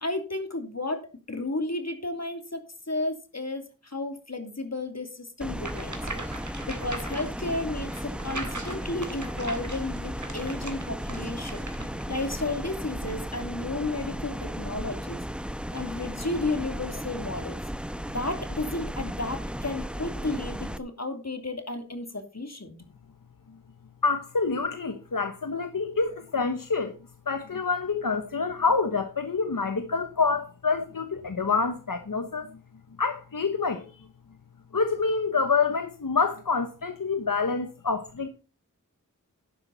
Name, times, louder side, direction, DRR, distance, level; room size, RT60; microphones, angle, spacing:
voice 1, 0.0-2.6 2.9-11.7 12.1-15.2 15.7-17.6 18.1-22.7, left 2 dB, 50° left, 6 dB, 2.8 m, -33 dB
sound 1, 5.4-20.8, equal, 5° right, 0.9 m, -35 dB
sound 2, 5.6-12.0, right 2 dB, 60° right, 3.5 m, -40 dB
voice 2, 24.0-27.0 27.3-32.5 33.0-34.0 34.7-38.3, left 4 dB, 80° left, 8 dB, 1.1 m, -27 dB
11.5 x 10.5 x 4.1 m, 0.32 s
wide cardioid pair, 45°, 33 cm